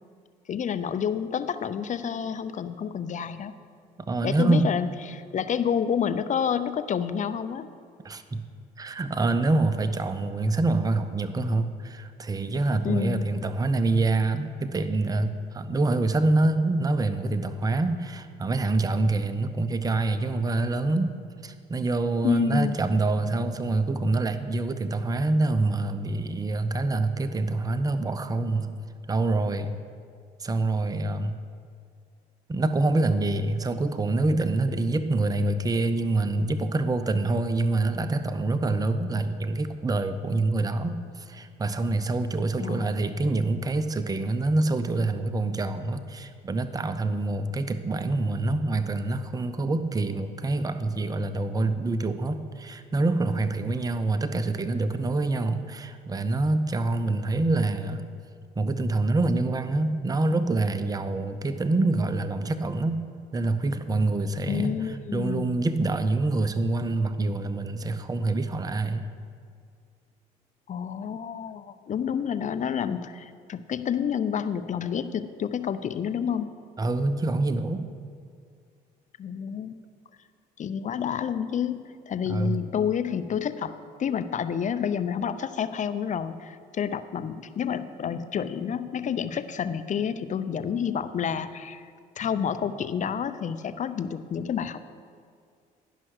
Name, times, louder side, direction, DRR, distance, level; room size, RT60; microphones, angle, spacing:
voice 1, 0.5-3.5 4.2-7.7 12.8-13.3 22.2-22.7 42.6-43.0 64.5-65.6 70.7-76.5 79.2-79.8 80.6-83.7 84.0-91.8 92.2-94.8, left 8 dB, 40° left, 12 dB, 0.5 m, -29 dB
voice 2, 4.1-4.7 8.0-8.4 8.8-21.1 21.4-28.7 29.1-29.8 30.4-31.4 32.5-58.1 58.6-63.0 63.3-69.1 76.8-77.9 82.3-82.6, right 2 dB, 20° right, 10 dB, 0.6 m, -26 dB
11.0 x 5.6 x 6.4 m, 2.2 s
supercardioid pair, 70°, 19 cm